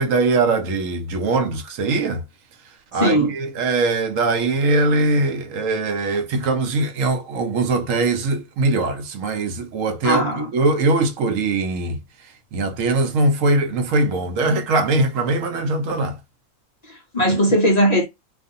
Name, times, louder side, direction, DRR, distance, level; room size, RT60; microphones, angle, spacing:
voice 1, 0.0-2.2 2.9-10.2 10.5-12.0 12.5-16.2, right 3 dB, 70° right, 0.9 m, -21 dB
voice 2, 2.9-3.3 10.0-10.5 16.9-18.1, equal, 50° left, 0.4 m, -19 dB
2.4 x 2.4 x 2.5 m
omnidirectional pair, 1.5 m